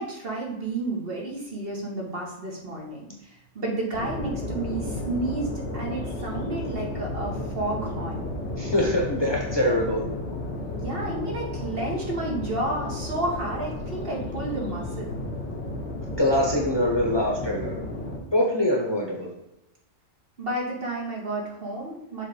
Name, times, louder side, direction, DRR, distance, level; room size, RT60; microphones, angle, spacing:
voice 1, 0.0-8.2 10.7-15.2 20.4-22.3, right 2 dB, 50° right, -2 dB, 1.6 m, -31 dB
sound 1, 3.9-18.2, left 1 dB, 65° left, 1.4 m, -33 dB
voice 2, 8.6-10.0 16.2-17.8 18.3-19.3, left 1 dB, 20° left, -2 dB, 1.1 m, -23 dB
6.5 x 3.3 x 5.0 m, 0.89 s
omnidirectional pair, 1.2 m